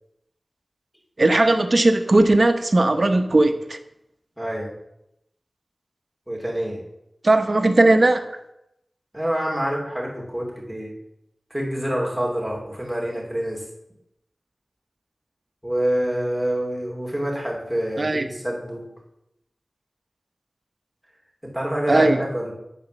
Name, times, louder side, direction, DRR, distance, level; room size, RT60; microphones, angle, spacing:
voice 1, 1.2-3.8 7.2-8.3 18.0-18.3 21.9-22.2, right 2 dB, 50° right, 8 dB, 0.8 m, -18 dB
voice 2, 4.4-4.7 6.3-6.8 9.1-10.9 11.5-13.6 15.6-18.9 21.4-22.5, equal, ahead, -3 dB, 2.8 m, -26 dB
9.4 x 4.1 x 6.8 m, 0.82 s
wide cardioid pair, 60°, 0 cm